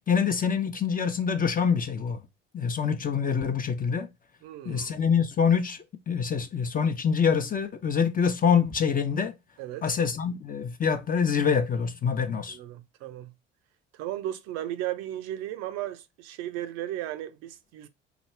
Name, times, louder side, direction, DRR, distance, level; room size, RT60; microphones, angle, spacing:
voice 1, 0.1-2.2 2.5-4.1 4.6-9.3 9.8-12.6, left 6 dB, 30° left, 0.7 m, -25 dB
voice 2, 4.4-5.0 9.6-10.0 12.5-13.3 13.9-17.9, right 13 dB, 60° right, 0.6 m, -35 dB
4.9 x 2.3 x 3.2 m
figure-of-eight pair, 55°, 30 cm